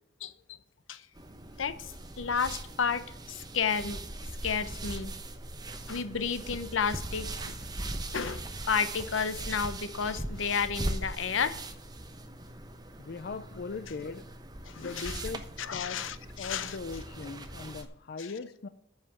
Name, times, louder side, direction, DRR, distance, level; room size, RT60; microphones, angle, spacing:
sound 1, 1.1-17.8, right 1 dB, 20° right, 0.9 m, -40 dB
voice 1, 1.6-4.0 4.4-5.1 5.9-7.6 8.1-11.6 13.5-14.0 14.6-15.3 15.6-16.8 18.2-18.4, left 6 dB, 85° left, 0.8 m, -32 dB
voice 2, 13.0-14.2 14.8-15.4 15.7-16.0 16.4-18.7, left 4 dB, 55° left, 0.5 m, -39 dB
9.9 x 5.7 x 7.8 m
head